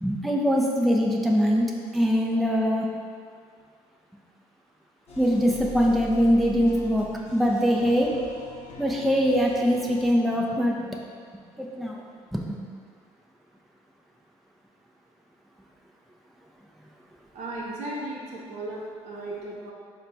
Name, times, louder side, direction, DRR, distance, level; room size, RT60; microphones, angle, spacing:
voice 1, 0.0-1.7 1.9-2.9 5.2-7.1 7.3-8.1 8.8-11.0 11.6-12.0 12.3-12.6, equal, ahead, -1 dB, 0.4 m, -22 dB
sound 1, 5.1-10.1, left 1 dB, 60° left, 0.6 m, -42 dB
voice 2, 17.3-19.7, right 2 dB, 65° right, -4 dB, 0.7 m, -35 dB
4.4 x 2.1 x 3.9 m, 2.1 s
supercardioid pair, 85°, 12 cm